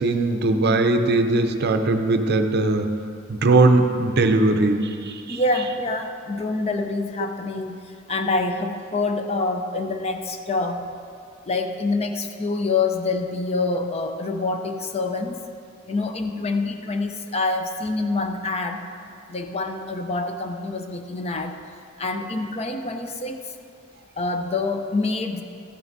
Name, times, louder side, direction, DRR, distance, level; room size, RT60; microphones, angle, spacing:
voice 1, 0.0-3.0 3.3-5.4, right 2 dB, 50° right, 6 dB, 0.6 m, -20 dB
voice 2, 5.3-10.8 11.5-15.4 15.9-18.8 19.3-21.6 22.0-23.4 24.2-25.4, left 3 dB, 30° left, 6 dB, 0.5 m, -26 dB
13.5 x 9.2 x 2.7 m, 2.4 s
head